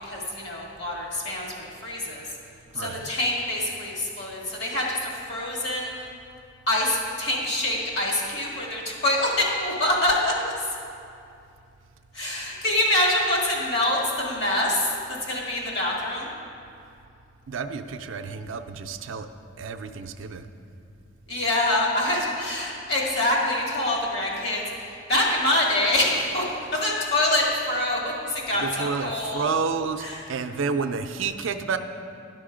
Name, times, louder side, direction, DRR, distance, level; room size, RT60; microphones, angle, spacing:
voice 1, 0.0-2.3 2.8-5.9 6.7-10.3 10.7-10.8 12.1-14.9 15.2-16.3 21.3-26.5 26.7-29.5 30.0-30.3, left 1 dB, 55° left, -2 dB, 1.7 m, -25 dB
voice 2, 2.7-3.1 17.5-19.3 19.6-20.4 28.5-30.0 30.3-31.8, right 5 dB, 75° right, 7 dB, 0.5 m, -30 dB
11.5 x 6.1 x 5.0 m, 2.5 s
head